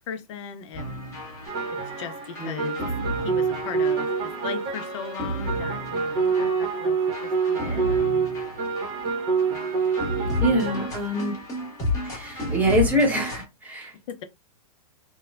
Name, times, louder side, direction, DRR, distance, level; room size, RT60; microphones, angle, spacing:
voice 1, 0.1-0.9 2.0-2.8 3.2-8.3 10.5-10.7 14.1-14.2, left 8 dB, 50° left, 0.5 m, -38 dB
sound 1, 0.7-13.4, left 1 dB, 15° left, 0.9 m, -33 dB
sound 2, 1.5-10.9, right 5 dB, 35° right, 0.8 m, -27 dB
voice 2, 2.4-2.7 10.4-11.4 12.0-13.9, equal, 10° right, 0.8 m, -25 dB
3.0 x 2.1 x 2.3 m
hypercardioid pair, 145°, 20 cm